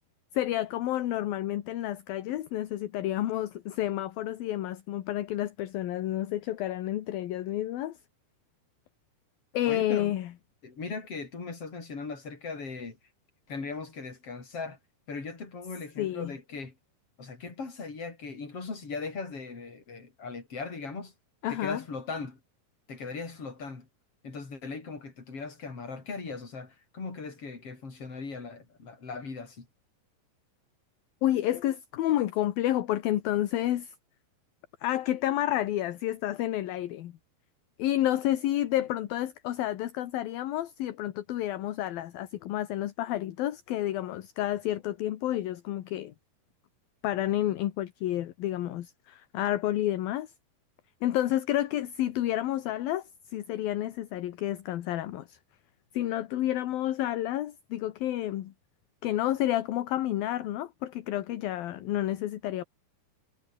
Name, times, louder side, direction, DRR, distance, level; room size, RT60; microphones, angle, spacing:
voice 1, 0.3-8.0 9.5-10.3 16.0-16.3 21.4-21.8 31.2-33.9 34.8-37.1 37.8-46.1 47.0-50.3 51.0-53.0 53.3-55.4 55.9-58.5 59.0-62.6, left 13 dB, 70° left, 3.0 m, -30 dB
voice 2, 9.7-10.1 10.6-13.0 13.5-14.8 15.1-16.8 17.2-21.1 21.5-22.4 22.9-23.9 24.2-29.7, left 4 dB, 35° left, 5.9 m, -38 dB
omnidirectional pair, 4.7 m